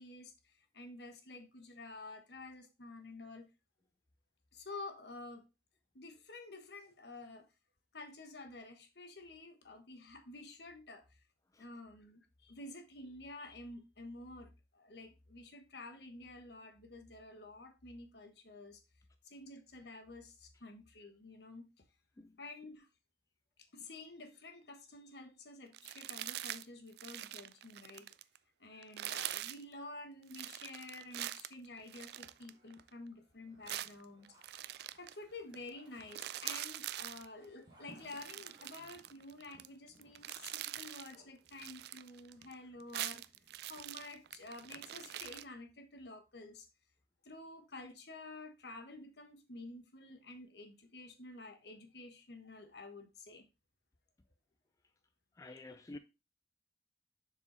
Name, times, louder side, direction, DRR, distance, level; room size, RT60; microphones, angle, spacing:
voice 1, 0.0-3.5 4.5-5.5 5.9-7.5 7.9-11.2 11.6-18.8 19.2-21.8 22.4-22.9 23.7-28.1 28.6-34.4 35.0-43.2 43.6-46.7 47.2-53.5 55.4-55.8, left 2 dB, 65° left, 1.3 m, -50 dB
sound 1, 25.7-26.7 26.9-28.4 28.8-29.6 30.3-32.9 33.7-35.2 35.5-35.7 36.0-37.3 38.0-39.7 40.0-41.2 41.5-42.5 42.8-45.4, right 13 dB, 60° right, 0.3 m, -44 dB
sound 2, 31.0-39.2, right 1 dB, 25° right, 2.5 m, -68 dB
sound 3, 31.6-45.4, equal, 35° left, 1.1 m, -67 dB
voice 2, 55.4-56.0, left 2 dB, 20° left, 0.4 m, -50 dB
6.9 x 4.8 x 4.0 m
head